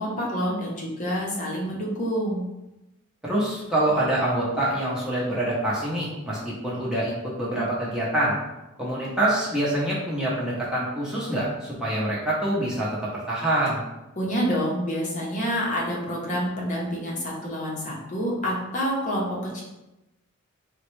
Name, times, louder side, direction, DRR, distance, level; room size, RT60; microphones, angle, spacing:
voice 1, 0.0-2.5 14.2-19.6, equal, 35° left, -4 dB, 0.7 m, -27 dB
voice 2, 3.2-8.4 8.8-13.8, right 1 dB, 5° right, -7 dB, 0.7 m, -25 dB
3.8 x 2.1 x 3.0 m, 0.97 s
head